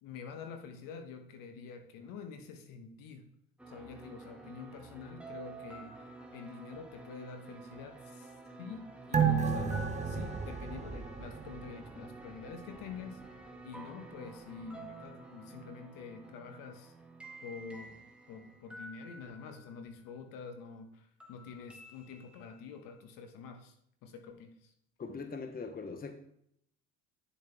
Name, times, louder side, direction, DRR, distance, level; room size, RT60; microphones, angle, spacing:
voice 1, 0.0-3.3 3.7-13.2 13.6-16.9 17.4-18.0 18.3-23.7 24.0-24.7, left 5 dB, 65° left, 6 dB, 1.5 m, -47 dB
sound 1, 3.6-20.2 21.2-22.9, right 2 dB, 5° right, 1.6 m, -50 dB
sound 2, 9.1-12.0 12.4-12.5, right 6 dB, 20° right, 1.0 m, -31 dB
voice 2, 25.0-26.1, left 4 dB, 25° left, 8 dB, 1.0 m, -41 dB
9.4 x 7.1 x 3.5 m, 0.71 s
hypercardioid pair, 75°, 36 cm